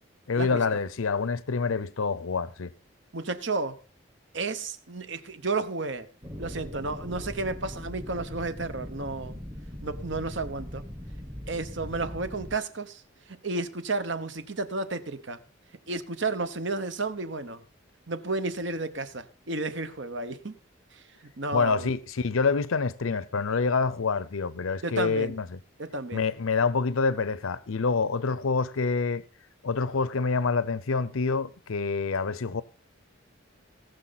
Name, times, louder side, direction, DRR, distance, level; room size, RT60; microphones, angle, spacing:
voice 1, 0.3-2.7 21.5-25.6 26.1-29.2 29.6-32.6, left 4 dB, 80° left, 0.6 m, -27 dB
voice 2, 3.1-3.8 4.3-6.1 6.4-9.4 9.8-10.8 11.5-13.0 13.3-15.4 15.9-17.6 18.1-20.6 20.9-21.0 21.4-21.9 24.8-25.4 25.8-26.3, right 3 dB, 60° right, 1.1 m, -32 dB
sound 1, 6.2-12.6, equal, 15° right, 1.2 m, -40 dB
19.0 x 6.7 x 4.1 m
head